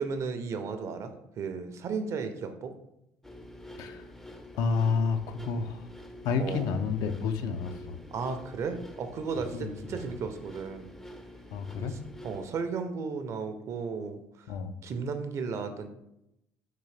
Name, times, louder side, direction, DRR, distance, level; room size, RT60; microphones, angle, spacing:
voice 1, 0.0-2.7 6.4-6.7 8.1-10.9 12.2-14.2 14.8-15.9, right 5 dB, 50° right, 8 dB, 0.5 m, -34 dB
sound 1, 3.2-12.5, left 1 dB, 5° left, 0.4 m, -47 dB
voice 2, 3.8-4.1 4.5-5.9 6.2-8.0 9.5-10.0 11.5-11.9 14.5-14.8, left 5 dB, 70° left, 8 dB, 0.4 m, -30 dB
3.7 x 2.7 x 3.2 m, 0.83 s
supercardioid pair, 90°, 7 cm